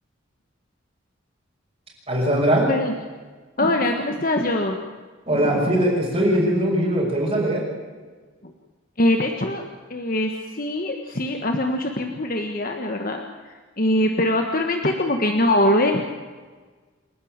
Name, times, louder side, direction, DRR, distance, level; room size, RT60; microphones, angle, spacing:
voice 1, 2.1-2.7 5.3-7.6, right 1 dB, 30° right, -4 dB, 6.2 m, -20 dB
voice 2, 3.6-4.8 5.3-5.8 8.4-8.5 9.0-9.6 9.9-16.0, left 1 dB, 45° left, 3 dB, 1.5 m, -23 dB
28.5 x 11.5 x 8.9 m, 1.4 s
head